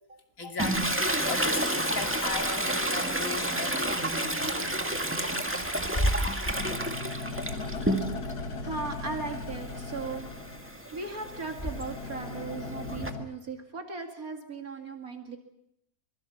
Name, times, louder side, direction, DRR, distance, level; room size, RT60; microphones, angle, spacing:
voice 1, 0.4-4.9, left 4 dB, 55° left, 4 dB, 3.1 m, -37 dB
Toilet flush, 0.6-8.4 8.8-13.1, right 1 dB, 10° right, 1.7 m, -31 dB
Bird / Wind, 5.6-12.2, equal, 20° left, 1.9 m, -36 dB
sound 1, 6.5-13.3, left 3 dB, 90° left, 1.9 m, -38 dB
voice 2, 8.2-10.3 10.6-15.4, right 4 dB, 65° right, 4 dB, 2.7 m, -38 dB
25.0 x 22.5 x 7.2 m, 0.78 s
omnidirectional pair, 1.7 m